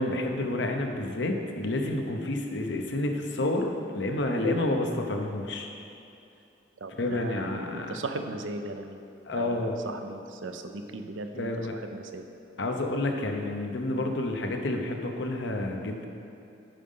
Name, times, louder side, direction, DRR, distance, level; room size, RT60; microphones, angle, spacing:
voice 1, 0.0-5.7 7.0-7.9 9.3-9.8 11.3-11.7 12.6-16.1, left 2 dB, 65° left, 3 dB, 0.9 m, -29 dB
voice 2, 6.8-9.0 9.3-12.2, right 2 dB, 90° right, 7 dB, 0.6 m, -38 dB
9.0 x 5.1 x 5.6 m, 2.8 s
head